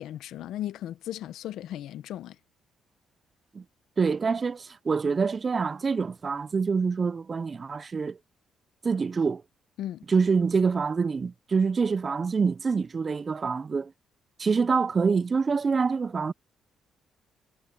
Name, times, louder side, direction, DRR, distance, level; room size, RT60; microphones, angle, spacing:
voice 1, 0.0-2.4 9.8-10.1, left 12 dB, 80° left, 0.8 m, -36 dB
voice 2, 4.0-8.2 8.8-9.4 10.1-13.9 14.4-16.3, right 5 dB, 35° right, 0.4 m, -26 dB
cardioid pair, 90°, 0 cm